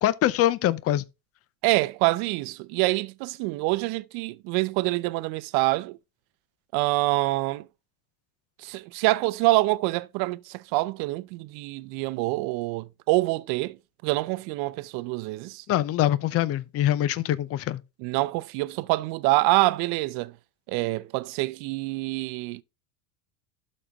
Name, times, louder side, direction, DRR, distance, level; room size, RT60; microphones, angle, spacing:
voice 1, 0.0-1.0 15.7-17.8, left 12 dB, 30° left, 0.6 m, -24 dB
voice 2, 1.6-6.0 6.7-7.7 8.6-13.8 14.0-15.6 18.0-20.3 20.7-22.6, right 21 dB, 55° right, 0.7 m, -26 dB
12.0 x 4.4 x 3.5 m
supercardioid pair, 120°, 45 cm